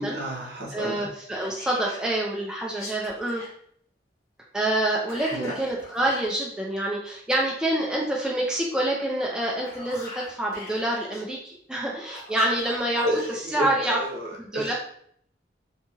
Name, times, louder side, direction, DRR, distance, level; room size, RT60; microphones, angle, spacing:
voice 1, 0.0-1.1 5.3-5.5 13.0-14.7, right 1 dB, 60° right, -1 dB, 0.7 m, -31 dB
voice 2, 0.7-3.4 4.5-14.0 14.3-14.7, right 1 dB, 5° right, -3 dB, 0.3 m, -27 dB
Whispering, 1.3-2.1 2.7-3.5 5.1-6.3 9.4-11.2 12.1-13.3, left 2 dB, 50° left, 1.1 m, -41 dB
2.8 x 2.8 x 2.3 m, 0.64 s
head